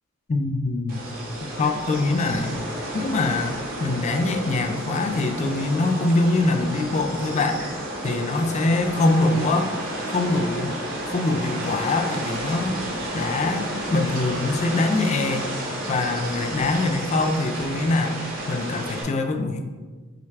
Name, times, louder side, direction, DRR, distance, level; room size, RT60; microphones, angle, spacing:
voice 1, 0.3-1.1 1.6-2.6 2.9-7.6 8.0-9.7 10.1-10.8 11.1-12.8 13.1-15.6 15.9-18.2 18.5-19.6, left 2 dB, 35° left, 5 dB, 0.3 m, -23 dB
sound 1, 0.9-19.0, right 1 dB, 45° right, 1.0 m, -31 dB
5.7 x 2.3 x 3.3 m, 1.4 s
head